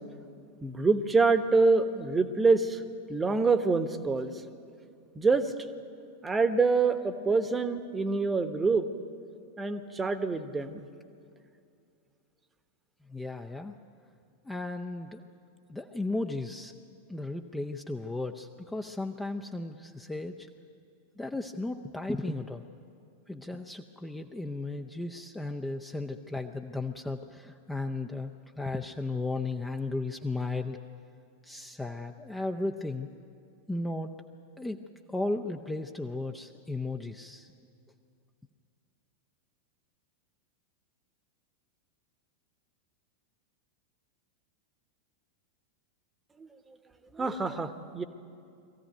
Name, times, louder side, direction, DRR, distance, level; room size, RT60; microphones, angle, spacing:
voice 1, 0.6-2.8 3.1-4.4 5.1-5.5 6.2-8.9 9.6-10.8 46.4-46.5 47.1-48.0, right 4 dB, 15° right, 11 dB, 1.1 m, -26 dB
voice 2, 13.1-13.8 14.4-15.2 15.7-16.7 17.1-20.5 21.2-22.6 23.3-30.8 31.4-33.1 33.7-34.1 34.6-34.8 35.1-37.5, left 2 dB, 5° left, 5 dB, 0.7 m, -35 dB
22.0 x 15.0 x 9.2 m, 2.5 s
figure-of-eight pair, 90°, 0 cm